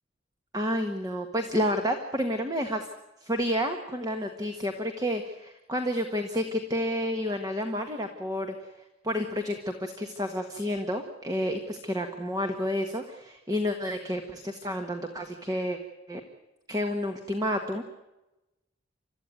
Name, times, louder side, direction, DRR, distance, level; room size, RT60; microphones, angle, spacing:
voice 1, 0.5-2.9 3.2-15.8 16.1-16.2 16.7-17.8, equal, 20° right, 5 dB, 1.5 m, -30 dB
29.5 x 14.0 x 9.3 m, 1.0 s
head